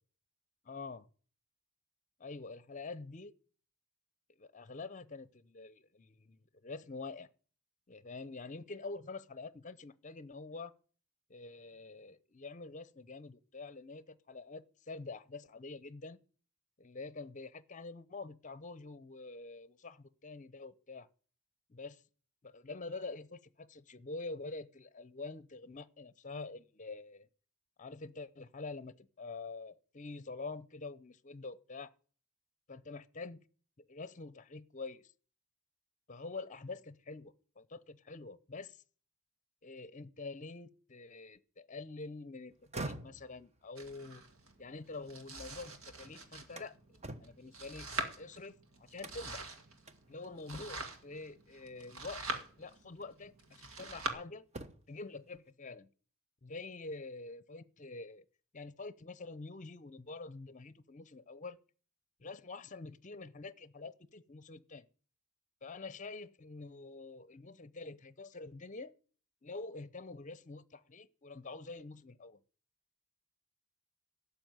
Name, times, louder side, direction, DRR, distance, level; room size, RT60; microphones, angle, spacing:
voice 1, 0.6-1.1 2.2-3.3 4.4-7.3 7.9-10.7 11.3-16.2 16.8-21.1 21.7-22.0 22.4-27.3 27.8-31.9 32.7-33.4 33.8-35.0 36.1-38.8 39.6-44.2 44.6-47.9 48.2-49.5 50.1-52.2 52.6-54.5 54.9-55.9 56.4-58.2 58.5-61.6 62.2-64.9 65.6-68.9 69.4-72.4, left 3 dB, 35° left, 0.7 m, -46 dB
sound 1, 42.5-45.6 46.0-48.4 49.0-49.5 49.9-50.0 50.5-51.0 52.3-52.4 53.0-54.1 54.4-55.0, right 2 dB, 30° right, 1.1 m, -48 dB
Domestic sounds home sounds, 43.8-54.1, right 3 dB, 75° right, 2.0 m, -44 dB
12.0 x 7.0 x 9.4 m
head